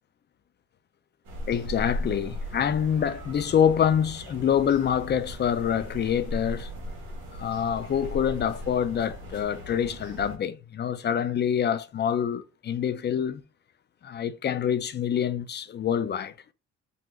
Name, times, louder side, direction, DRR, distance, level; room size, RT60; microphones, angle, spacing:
sound 1, 1.2-10.4, equal, 90° right, 1.4 m, -38 dB
voice 1, 1.5-6.7 7.3-13.4 14.0-16.3, left 8 dB, 35° left, 0.4 m, -26 dB
3.9 x 2.9 x 2.4 m
cardioid pair, 90°, 30 cm